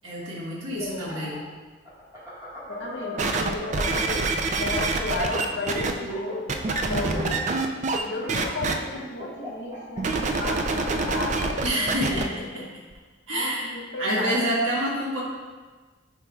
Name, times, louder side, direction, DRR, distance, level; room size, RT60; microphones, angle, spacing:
voice 1, 0.0-1.4 6.8-7.4 11.6-12.8 13.3-13.7 14.0-15.2, equal, 80° right, -5 dB, 1.5 m, -28 dB
sound 1, 0.7-4.3 4.6-10.0, equal, 20° right, 1.6 m, -40 dB
voice 2, 2.7-6.5 6.9-7.3 8.0-12.3 12.5-12.7 13.3-14.4, left 2 dB, 60° left, -1 dB, 0.9 m, -33 dB
sound 2, 3.2-5.9 6.5-8.0 8.3-8.7 10.0-12.2 12.9-13.0, right 3 dB, 35° right, 0.3 m, -26 dB
9.1 x 4.5 x 2.4 m, 1.3 s
head